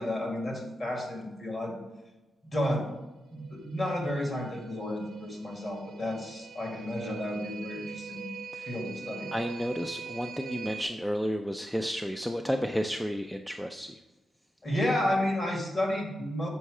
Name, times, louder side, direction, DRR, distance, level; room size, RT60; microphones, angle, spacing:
voice 1, 0.0-1.8 2.4-2.9 3.3-8.3 8.7-9.3 14.6-16.5, left 1 dB, 35° left, 1 dB, 1.8 m, -31 dB
sound 1, 3.3-10.8, right 7 dB, 65° right, 0.5 m, -43 dB
voice 2, 9.3-14.0, equal, 5° left, 5 dB, 0.3 m, -32 dB
7.1 x 5.5 x 4.8 m, 1.1 s
wide cardioid pair, 140°, 0 cm